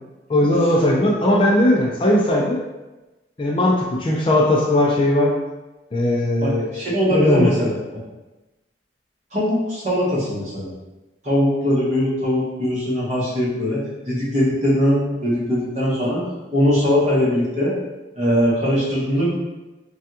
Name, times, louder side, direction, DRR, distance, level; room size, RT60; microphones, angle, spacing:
voice 1, 0.3-2.6 3.4-5.4 5.9-6.7 7.1-7.5, left 1 dB, 30° left, -2 dB, 0.4 m, -18 dB
voice 2, 6.4-7.7 9.3-10.7 11.2-16.2 16.5-17.7 18.2-19.3, equal, 40° right, -7 dB, 1.0 m, -21 dB
3.3 x 2.3 x 2.8 m, 1.1 s
head